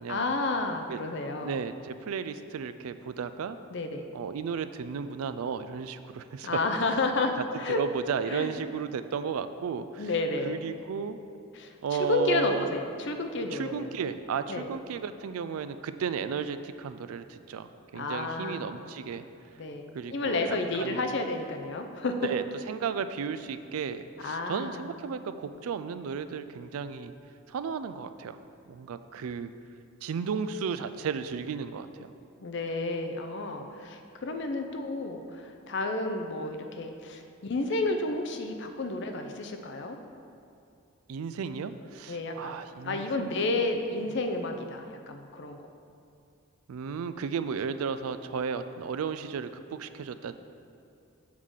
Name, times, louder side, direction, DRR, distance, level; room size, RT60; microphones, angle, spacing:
voice 1, 0.1-1.6 3.7-4.1 6.4-7.8 8.3-8.5 10.0-10.6 11.6-11.7 12.0-13.9 14.5-14.7 17.9-18.8 19.6-22.3 24.2-24.8 32.4-40.0 42.1-42.6 42.8-45.6, left 2 dB, 55° left, 6 dB, 0.5 m, -31 dB
voice 2, 1.4-3.6 4.1-6.5 7.7-10.1 10.4-11.2 11.8-12.7 13.5-19.2 19.9-21.1 22.2-27.1 27.5-28.4 28.7-29.5 30.0-32.1 41.1-43.4 46.7-50.4, right 6 dB, 85° right, 11 dB, 0.3 m, -34 dB
7.3 x 3.7 x 6.3 m, 2.5 s
head